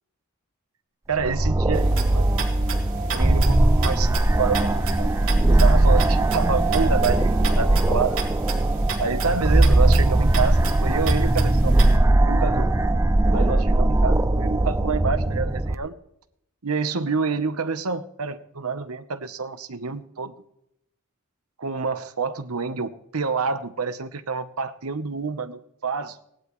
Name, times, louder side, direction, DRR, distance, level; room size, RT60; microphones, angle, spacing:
voice 1, 1.1-2.3 3.1-5.1 5.5-8.2 9.0-11.7 12.2-12.7 13.3-16.0 16.6-20.3 21.6-26.1, right 5 dB, 90° right, 11 dB, 1.0 m, -28 dB
sound 1, 1.2-15.7, right 1 dB, 15° right, 0.4 m, -20 dB
sound 2, 1.7-12.0, right 5 dB, 70° right, 2.9 m, -34 dB
17.5 x 11.5 x 3.2 m, 0.74 s
head